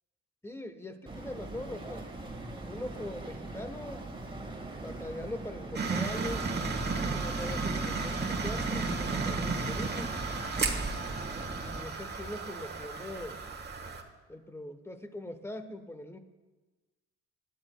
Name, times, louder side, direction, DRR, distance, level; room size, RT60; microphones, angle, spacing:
voice 1, 0.4-2.1 2.6-4.1 4.8-6.5 6.8-10.2 11.3-13.4 14.3-16.2, left 1 dB, 10° left, 8 dB, 1.0 m, -42 dB
Boat Water vehicle, 1.1-11.8, right 2 dB, 15° right, 1.7 m, -38 dB
sound 1, 5.7-14.0, right 4 dB, 35° right, 1.3 m, -35 dB
18.0 x 11.0 x 2.2 m, 1.2 s
cardioid pair, 90°, 30 cm